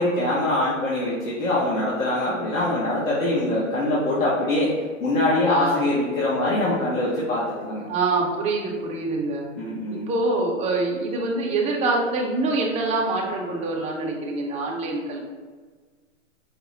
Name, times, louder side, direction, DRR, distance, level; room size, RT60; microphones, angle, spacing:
voice 1, 0.0-4.7 5.0-7.8 9.6-10.1, left 1 dB, 80° left, -7 dB, 1.1 m, -23 dB
voice 2, 5.4-5.8 7.9-9.4 9.9-15.2, right 3 dB, 15° right, -1 dB, 0.6 m, -25 dB
5.0 x 2.0 x 3.8 m, 1.5 s
hypercardioid pair, 120°, 40 cm